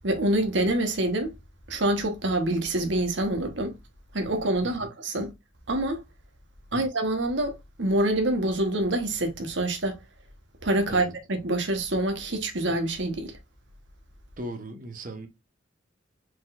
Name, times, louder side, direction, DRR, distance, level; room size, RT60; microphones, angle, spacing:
voice 1, 0.0-1.3 1.7-3.7 4.1-5.3 5.7-6.0 6.7-10.0 10.6-13.4, right 1 dB, 70° right, 1.1 m, -26 dB
voice 2, 14.4-15.3, right 1 dB, 45° right, 0.9 m, -38 dB
4.7 x 4.0 x 2.4 m
head